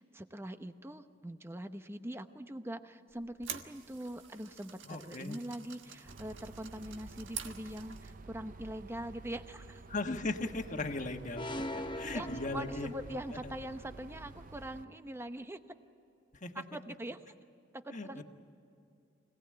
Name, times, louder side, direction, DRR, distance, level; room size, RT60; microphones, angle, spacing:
voice 1, 0.0-9.8 12.1-12.3 12.5-15.6 16.5-17.2 17.7-18.2, right 1 dB, 15° right, 9 dB, 0.9 m, -43 dB
sound 1, 3.1-8.2, right 8 dB, 85° right, 1.4 m, -47 dB
voice 2, 4.9-5.4 9.9-12.9 13.4-13.5 16.4-16.5 17.9-18.2, left 2 dB, 40° left, 5 dB, 1.5 m, -38 dB
sound 2, 6.0-14.8, right 3 dB, 45° right, 0.6 m, -51 dB
sound 3, 11.4-13.4, left 1 dB, 25° left, 0.8 m, -40 dB
25.5 x 18.5 x 8.8 m, 2.6 s
head